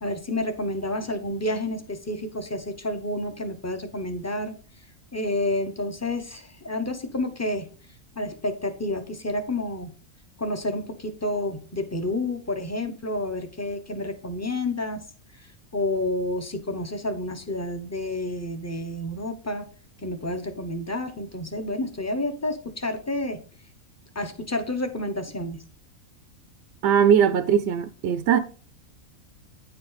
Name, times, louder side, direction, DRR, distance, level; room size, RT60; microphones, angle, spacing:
voice 1, 0.0-4.5 5.1-7.7 8.2-9.9 10.4-15.0 15.4-19.7 20.0-23.4 24.1-25.6, left 1 dB, 15° left, 0.6 m, -29 dB
voice 2, 26.8-28.4, right 8 dB, 65° right, 0.7 m, -20 dB
9.3 x 4.6 x 3.9 m
omnidirectional pair, 1.5 m